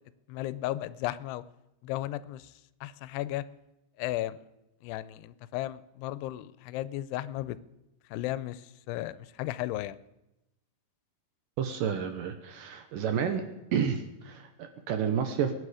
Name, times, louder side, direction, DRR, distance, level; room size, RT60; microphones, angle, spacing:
voice 1, 0.3-1.4 1.8-2.5 2.8-3.4 4.0-4.4 4.8-7.6 8.1-10.0, left 15 dB, 90° left, 16 dB, 2.7 m, -35 dB
voice 2, 11.6-13.4 13.7-15.5, right 7 dB, 70° right, 7 dB, 2.2 m, -30 dB
21.5 x 9.9 x 5.0 m, 0.95 s
omnidirectional pair, 4.6 m